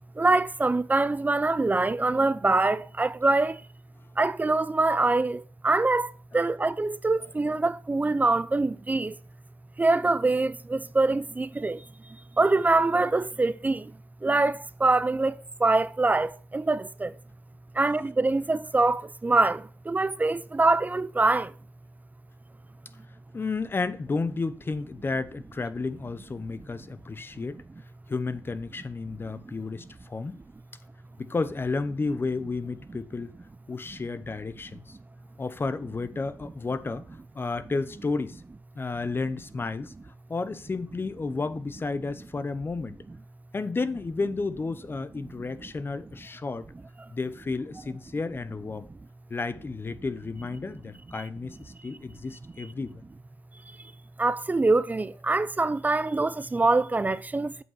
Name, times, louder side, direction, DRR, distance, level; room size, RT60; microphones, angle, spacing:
voice 1, 0.2-3.6 4.2-9.2 9.8-11.8 12.4-13.9 14.2-17.1 17.7-21.5 47.0-47.1 54.2-57.6, right 3 dB, 25° right, 0.5 m, -24 dB
voice 2, 23.3-27.6 28.1-30.4 31.2-33.3 33.7-35.0 35.4-37.1 37.3-38.4 38.8-39.9 40.3-43.0 43.5-46.7 47.1-48.9 49.3-53.0, left 3 dB, 35° left, 0.8 m, -32 dB
7.8 x 5.5 x 5.6 m
cardioid pair, 60°, 6 cm